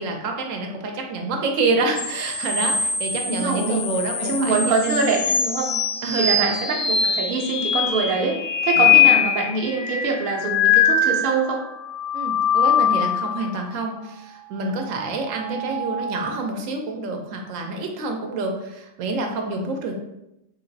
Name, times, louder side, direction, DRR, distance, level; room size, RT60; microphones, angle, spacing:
voice 1, 0.0-5.0 6.0-6.5 8.8-9.2 12.1-19.9, right 3 dB, 85° right, 2 dB, 1.0 m, -27 dB
sound 1, 2.0-11.5 12.0-13.3 15.1-16.3, left 6 dB, 40° left, 0.4 m, -22 dB
voice 2, 3.2-3.9 4.2-5.7 6.2-11.6 15.5-15.6, right 4 dB, 55° right, -1 dB, 0.7 m, -24 dB
3.1 x 2.9 x 2.6 m, 0.87 s
omnidirectional pair, 1.3 m